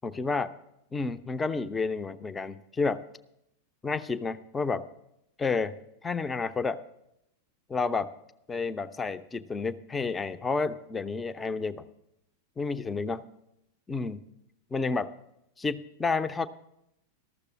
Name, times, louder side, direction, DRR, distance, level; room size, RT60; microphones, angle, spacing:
voice 1, 0.0-0.5 0.9-3.0 3.8-4.9 5.4-5.8 6.0-6.8 7.7-8.1 8.5-11.8 12.6-13.3 13.9-14.3 14.7-15.1 15.6-16.5, left 4 dB, 15° left, 13 dB, 0.5 m, -30 dB
13.5 x 6.6 x 7.1 m, 0.82 s
figure-of-eight pair, 90°, 0 cm